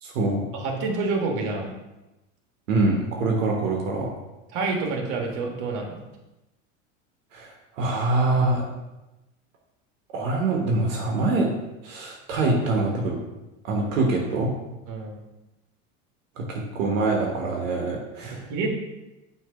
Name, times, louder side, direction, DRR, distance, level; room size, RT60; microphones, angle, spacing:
voice 1, 0.0-0.4 2.7-4.1 7.3-8.6 10.1-11.5 11.8-13.2 13.6-14.5 16.4-18.4, right 2 dB, 80° right, 0 dB, 1.3 m, -24 dB
voice 2, 0.5-1.7 4.5-6.0 12.4-12.5 14.9-15.1 18.2-18.7, right 3 dB, 50° right, 1 dB, 1.6 m, -28 dB
6.2 x 3.2 x 5.0 m, 1.0 s
supercardioid pair, 110°, 38 cm